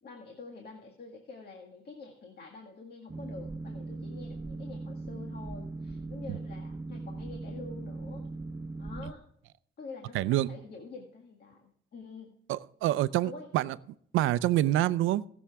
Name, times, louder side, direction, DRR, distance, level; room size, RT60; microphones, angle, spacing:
voice 1, 0.0-8.3 8.8-9.2 9.8-11.6 11.9-12.3 13.2-13.5, left 3 dB, 55° left, 2 dB, 1.9 m, -47 dB
Boat Water vehicle, 3.1-9.1, right 2 dB, 15° right, 1.0 m, -39 dB
voice 2, 10.1-10.5 12.5-13.8 14.1-15.2, right 14 dB, 90° right, 16 dB, 0.5 m, -26 dB
18.5 x 7.2 x 3.5 m, 0.67 s
cardioid pair, 90°, 20 cm